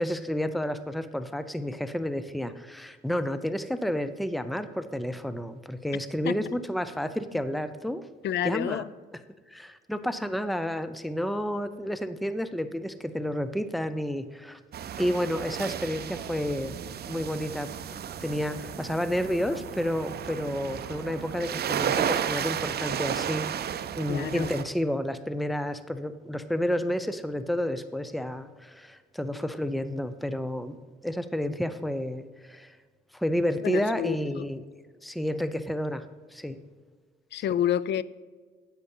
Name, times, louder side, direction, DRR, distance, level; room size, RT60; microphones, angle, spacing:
voice 1, 0.0-8.1 8.4-8.8 9.5-14.6 15.0-16.8 17.1-30.8 31.0-32.7 33.1-34.6 35.0-36.0 36.3-36.6 37.3-37.4, equal, ahead, 0.7 m, -30 dB
voice 2, 8.2-8.9 24.1-24.5 33.6-34.5 37.3-38.0, left 10 dB, 60° left, 0.5 m, -29 dB
sound 1, 14.7-24.6, right 9 dB, 55° right, 0.6 m, -33 dB
9.9 x 8.0 x 5.5 m
cardioid pair, 90°, 20 cm